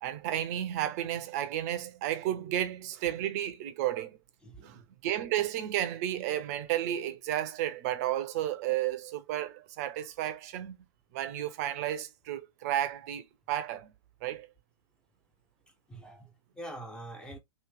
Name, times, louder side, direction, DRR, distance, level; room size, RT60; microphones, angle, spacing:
voice 1, 0.0-4.2 4.6-10.8 11.1-13.9 14.2-14.5, right 12 dB, 35° right, 0.6 m, -32 dB
voice 2, 4.4-4.9 15.9-17.4, right 1 dB, 5° left, 0.6 m, -45 dB
3.0 x 2.8 x 3.2 m
figure-of-eight pair, 115°, 16 cm